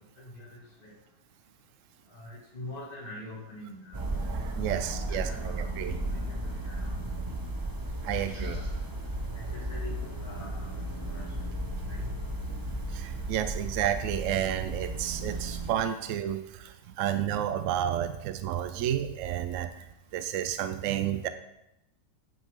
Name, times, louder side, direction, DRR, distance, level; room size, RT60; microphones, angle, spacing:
voice 1, 0.2-0.9 2.1-4.1 4.8-7.0 8.0-8.8 9.3-9.9 10.2-11.5 11.9-12.0, left 1 dB, 35° left, -3 dB, 2.5 m, -45 dB
sound 1, 3.9-15.7, right 1 dB, 30° right, 0.4 m, -34 dB
voice 2, 4.0-6.0 8.0-8.6 12.5-19.7 20.1-21.3, right 10 dB, 70° right, 10 dB, 0.8 m, -31 dB
sound 2, 9.5-11.5 11.7-13.7, left 4 dB, 80° left, 2.0 m, -47 dB
9.5 x 7.9 x 3.7 m, 0.88 s
omnidirectional pair, 1.7 m